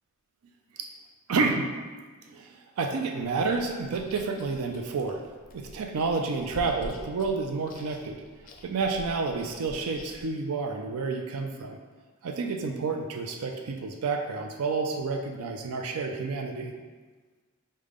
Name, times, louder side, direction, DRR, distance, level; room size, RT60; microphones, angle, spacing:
voice 1, 1.3-1.7 2.3-5.2 5.5-8.2 8.6-11.8 12.2-16.7, right 4 dB, 85° right, 3 dB, 0.4 m, -30 dB
Chewing mastication, 3.4-10.3, left 1 dB, 40° left, 0.4 m, -47 dB
4.9 x 2.2 x 3.5 m, 1.4 s
head